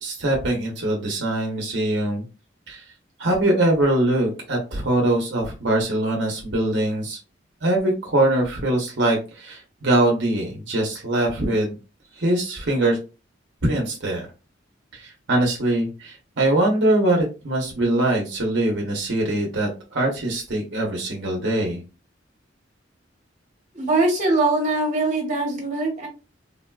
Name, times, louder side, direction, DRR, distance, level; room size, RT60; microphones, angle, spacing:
voice 1, 0.0-2.2 2.7-2.8 3.2-7.2 7.6-11.8 12.1-13.0 13.6-14.3 14.9-21.8, right 1 dB, 70° right, 0 dB, 0.9 m, -22 dB
voice 2, 23.7-26.1, right 2 dB, 40° right, -1 dB, 1.2 m, -22 dB
3.6 x 2.3 x 2.3 m, 0.31 s
head